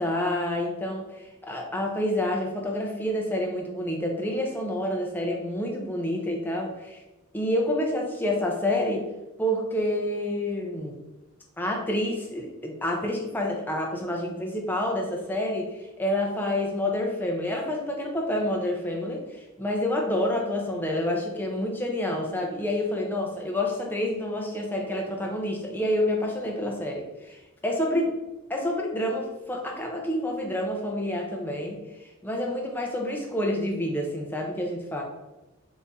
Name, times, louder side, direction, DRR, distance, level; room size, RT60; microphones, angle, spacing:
voice 1, 0.0-7.0 7.3-9.0 9.4-11.0 11.6-28.1 28.5-35.0, left 1 dB, 10° left, 0 dB, 0.5 m, -28 dB
4.1 x 2.6 x 3.5 m, 1.0 s
head